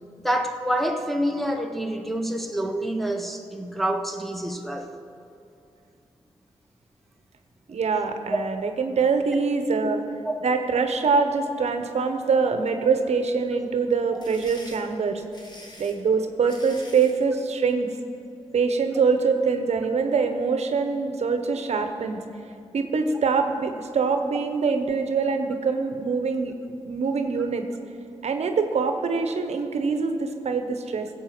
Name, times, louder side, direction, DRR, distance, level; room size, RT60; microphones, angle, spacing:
voice 1, 0.2-4.9 10.2-10.3, right 1 dB, ahead, 4 dB, 1.3 m, -27 dB
voice 2, 7.7-10.0 10.4-15.2 15.8-17.9 18.5-22.2 22.7-26.5 26.9-27.6 28.2-31.1, right 5 dB, 70° right, 7 dB, 1.0 m, -24 dB
sound 1, 13.9-17.2, left 1 dB, 40° left, 2.6 m, -46 dB
15.5 x 8.0 x 6.0 m, 2.6 s
cardioid pair, 55°, 12 cm